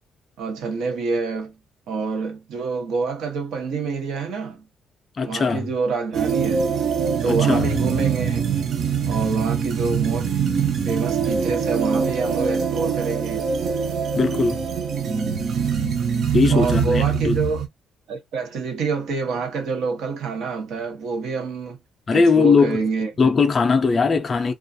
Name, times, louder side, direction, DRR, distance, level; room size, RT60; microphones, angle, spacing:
voice 1, 0.4-1.5 1.9-4.6 5.3-6.6 7.2-8.5 9.1-10.4 10.8-13.5 16.5-17.6 18.1-21.8 22.1-23.1, right 4 dB, 75° right, 0.9 m, -27 dB
voice 2, 5.2-5.7 7.3-7.7 14.1-14.7 16.3-17.4 22.1-22.8 23.2-24.5, left 4 dB, 30° left, 0.4 m, -19 dB
sound 1, 6.1-17.7, right 6 dB, 50° right, 0.5 m, -23 dB
2.4 x 2.3 x 2.6 m
cardioid pair, 160°, 0 cm